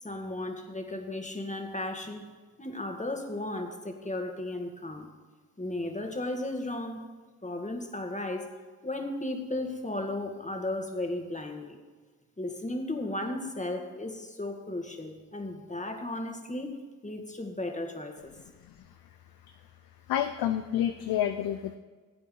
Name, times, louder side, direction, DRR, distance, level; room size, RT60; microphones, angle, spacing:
voice 1, 0.0-5.1 5.6-7.0 7.4-8.5 8.8-11.8 12.4-16.7 17.0-18.3, left 1 dB, 20° left, 4 dB, 2.0 m, -35 dB
voice 2, 20.1-21.8, left 11 dB, 85° left, 8 dB, 0.6 m, -28 dB
16.5 x 8.4 x 3.9 m, 1.4 s
supercardioid pair, 45°, 36 cm